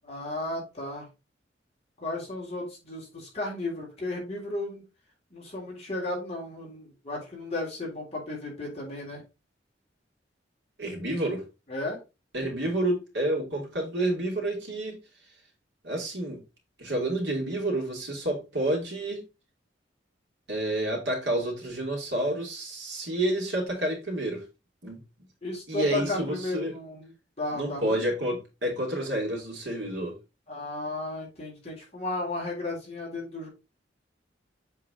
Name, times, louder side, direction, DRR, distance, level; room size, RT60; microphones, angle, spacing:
voice 1, 0.0-1.1 2.0-4.8 5.3-9.2 11.7-12.0 25.4-28.1 30.5-33.5, left 2 dB, 35° left, 3.4 m, -34 dB
voice 2, 10.8-11.4 12.3-15.0 15.8-16.4 16.8-19.2 20.5-24.4 24.8-25.0 25.7-26.7 27.5-30.1, right 1 dB, 70° right, 2.7 m, -29 dB
7.6 x 3.9 x 3.8 m
head